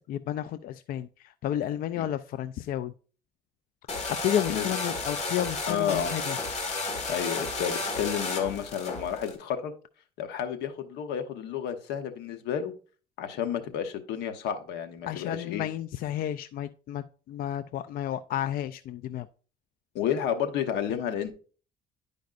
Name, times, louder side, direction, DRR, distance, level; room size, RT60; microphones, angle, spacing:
voice 1, 0.1-2.9 3.9-6.4 15.1-19.3, left 11 dB, 60° left, 12 dB, 0.4 m, -32 dB
sound 1, 3.9-9.3, left 3 dB, 40° left, 1.6 m, -32 dB
voice 2, 5.7-6.1 7.1-9.7 10.2-12.7 13.2-15.7 19.9-21.3, left 8 dB, 85° left, 8 dB, 0.9 m, -31 dB
10.5 x 5.1 x 2.5 m, 0.38 s
cardioid pair, 110°, 17 cm